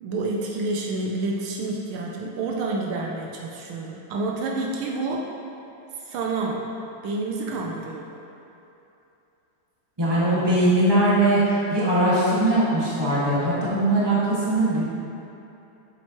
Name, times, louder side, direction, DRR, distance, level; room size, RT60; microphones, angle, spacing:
voice 1, 0.0-5.3 6.1-6.7 7.0-8.1, right 3 dB, 80° right, -1 dB, 1.5 m, -28 dB
voice 2, 10.0-11.4 11.7-14.8, right 1 dB, 10° right, -9 dB, 1.7 m, -20 dB
7.7 x 7.6 x 3.0 m, 2.9 s
omnidirectional pair, 2.3 m